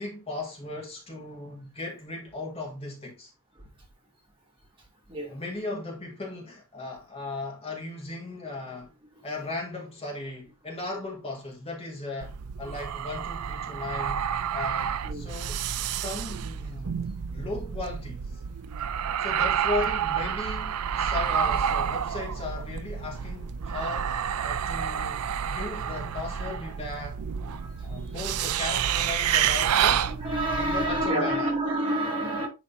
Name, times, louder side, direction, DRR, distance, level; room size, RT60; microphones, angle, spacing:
voice 1, 0.0-3.3 5.3-8.9 9.2-12.3 12.6-14.2 14.5-17.1 17.3-18.2 19.2-24.1 24.4-27.2 27.8-30.1 30.6-31.5, left 3 dB, 25° left, 2.1 m, -36 dB
sound 1, 12.2-31.1, right 8 dB, 90° right, 0.5 m, -29 dB
voice 2, 30.1-32.5, right 1 dB, 25° right, 2.6 m, -28 dB
10.0 x 4.1 x 2.7 m
head